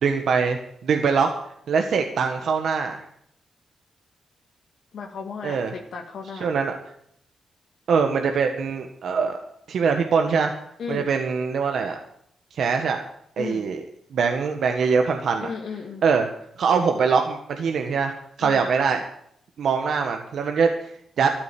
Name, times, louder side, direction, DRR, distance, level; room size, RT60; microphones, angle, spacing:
voice 1, 0.0-1.3 1.7-3.1 5.4-5.7 6.4-6.7 7.9-9.4 9.7-10.5 10.9-12.0 12.5-13.0 13.4-13.8 14.1-15.5 16.0-16.3 16.6-18.1 18.4-19.0 19.6-21.3, right 5 dB, 75° right, 4 dB, 1.6 m, -23 dB
voice 2, 4.9-6.5 10.8-11.1 13.4-13.7 15.4-16.0 18.4-18.7, left 5 dB, 75° left, 1 dB, 1.9 m, -34 dB
13.5 x 9.5 x 8.5 m, 0.69 s
cardioid pair, 70°, 0 cm